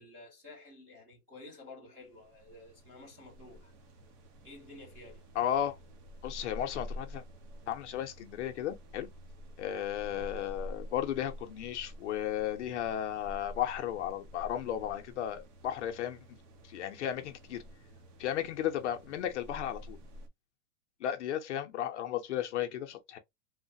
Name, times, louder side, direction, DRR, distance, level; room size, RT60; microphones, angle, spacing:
voice 1, 0.0-3.7 4.4-5.3, left 2 dB, 10° right, 0.5 m, -51 dB
sound 1, 2.0-20.3, equal, 85° right, 1.0 m, -49 dB
voice 2, 5.4-5.8 6.2-7.2 7.7-9.1 9.6-16.4 16.6-17.6 18.2-20.0 21.0-23.2, left 10 dB, 50° left, 0.5 m, -34 dB
3.1 x 2.1 x 2.6 m
supercardioid pair, 175°, 46 cm